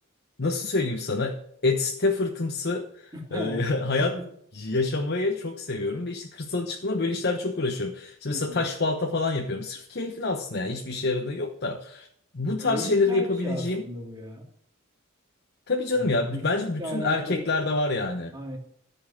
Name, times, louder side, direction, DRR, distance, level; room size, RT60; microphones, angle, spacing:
voice 1, 0.4-4.2 4.5-12.1 12.3-13.8 15.7-18.3, left 3 dB, 50° left, 3 dB, 1.1 m, -27 dB
voice 2, 3.1-3.6 4.1-4.2 8.3-8.7 12.6-14.4 16.0-17.5 18.3-18.6, equal, 20° right, -2 dB, 2.8 m, -36 dB
14.0 x 5.7 x 7.1 m, 0.68 s
head